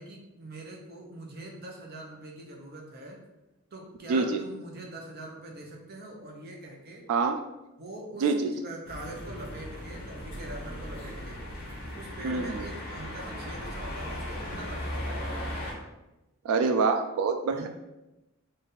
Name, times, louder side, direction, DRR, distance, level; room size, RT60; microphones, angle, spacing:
voice 1, 0.0-3.2 3.7-7.0 7.8-11.4 11.9-15.3 17.5-17.7, right 2 dB, 45° right, 0 dB, 0.8 m, -43 dB
voice 2, 4.1-4.4 7.1-7.4 8.2-8.5 12.2-12.6 16.4-17.7, right 4 dB, 80° right, 7 dB, 0.3 m, -26 dB
sound 1, 8.8-15.7, left 1 dB, 40° left, 1.2 m, -37 dB
3.9 x 2.5 x 4.0 m, 0.98 s
head